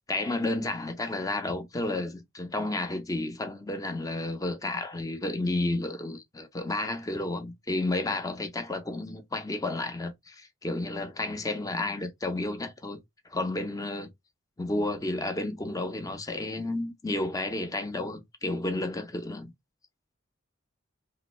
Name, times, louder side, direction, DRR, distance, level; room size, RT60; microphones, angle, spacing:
voice 1, 0.1-13.0 13.3-14.1 14.6-19.5, left 2 dB, 20° left, 0.5 m, -31 dB
2.9 x 2.5 x 3.0 m
head